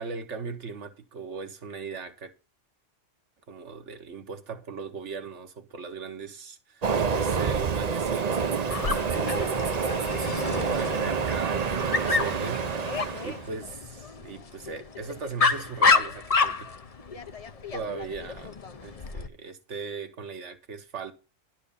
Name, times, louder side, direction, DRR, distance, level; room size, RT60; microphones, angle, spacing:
voice 1, 0.0-2.3 3.5-9.5 10.1-16.7 17.7-18.5 18.8-21.1, right 5 dB, 70° right, 1.6 m, -38 dB
Train, 6.8-13.5, right 6 dB, 40° right, 0.6 m, -28 dB
Dog, 8.7-19.3, left 4 dB, 35° left, 0.7 m, -29 dB
11.5 x 4.6 x 6.9 m
omnidirectional pair, 1.3 m